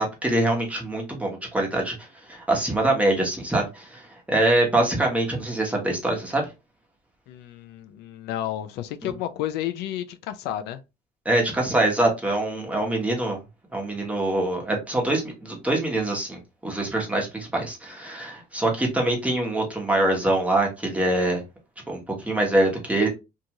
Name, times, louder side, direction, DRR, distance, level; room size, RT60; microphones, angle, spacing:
voice 1, 0.0-6.5 9.0-9.1 11.2-13.4 13.7-21.4 21.9-23.1, right 1 dB, 10° right, 1.1 m, -24 dB
voice 2, 7.3-10.8, left 12 dB, 85° left, 0.4 m, -31 dB
2.6 x 2.4 x 2.9 m
cardioid pair, 110°, 17 cm